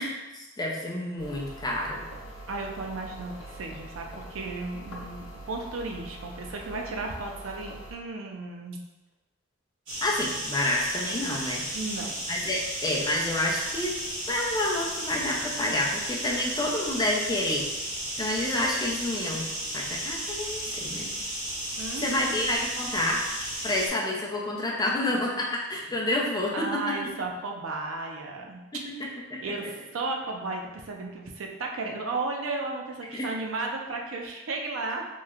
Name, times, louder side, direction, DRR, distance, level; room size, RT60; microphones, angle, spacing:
voice 1, 0.0-2.1 10.0-11.6 12.3-14.0 14.3-17.7 18.2-19.4 19.7-21.1 22.0-23.2 23.6-27.1 29.3-29.4 33.1-33.3, left 1 dB, 20° left, -2 dB, 0.5 m, -29 dB
sound 1, 1.2-7.9, right 1 dB, 70° left, 0.7 m, -43 dB
voice 2, 2.5-8.8 11.7-12.2 21.8-22.4 26.5-28.6 29.4-35.0, right 3 dB, 90° right, 2 dB, 0.5 m, -34 dB
sound 2, 9.9-23.9, right 1 dB, 70° right, 1.2 m, -34 dB
3.0 x 2.1 x 3.6 m, 1.1 s
head